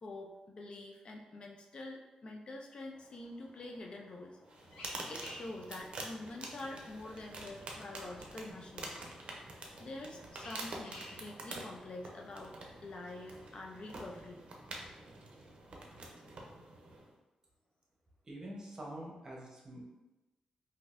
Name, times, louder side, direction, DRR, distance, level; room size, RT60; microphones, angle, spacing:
voice 1, 0.0-4.4 5.1-9.0 9.8-14.4, left 2 dB, 45° left, 1 dB, 0.4 m, -46 dB
sound 1, 2.9-13.9, left 1 dB, 65° left, 1.2 m, -57 dB
sound 2, 4.5-17.1, right 2 dB, 55° right, 0.6 m, -47 dB
voice 2, 18.2-19.9, right 1 dB, 30° right, -3 dB, 0.9 m, -46 dB
3.8 x 2.6 x 2.5 m, 1.1 s
cardioid pair, 115°, 2 cm